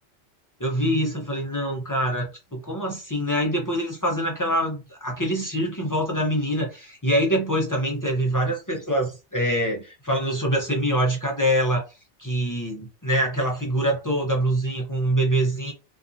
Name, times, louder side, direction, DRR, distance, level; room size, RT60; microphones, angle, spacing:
voice 1, 0.6-11.9 12.2-15.7, equal, 30° left, 0.4 m, -24 dB
2.7 x 2.4 x 2.5 m
omnidirectional pair, 1.2 m